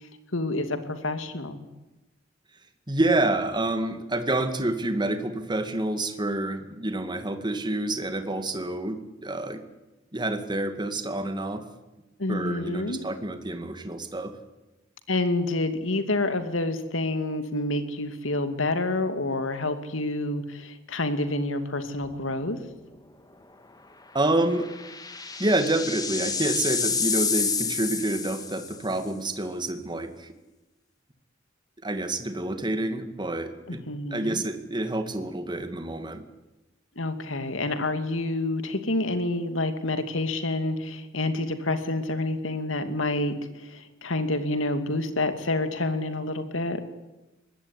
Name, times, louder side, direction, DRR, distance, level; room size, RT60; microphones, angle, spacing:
voice 1, 0.3-1.6 12.2-13.0 15.1-22.6 33.7-34.4 37.0-46.8, left 2 dB, 80° left, 9 dB, 2.6 m, -28 dB
voice 2, 2.9-9.6 10.1-11.6 12.3-14.3 24.1-24.7 25.4-30.3 31.8-33.8 34.1-36.2, right 2 dB, 25° right, 8 dB, 2.2 m, -28 dB
sound 1, 22.1-22.4 22.7-22.8 24.2-28.9, left 5 dB, 20° left, 2.2 m, -29 dB
23.5 x 20.0 x 9.8 m, 1.0 s
head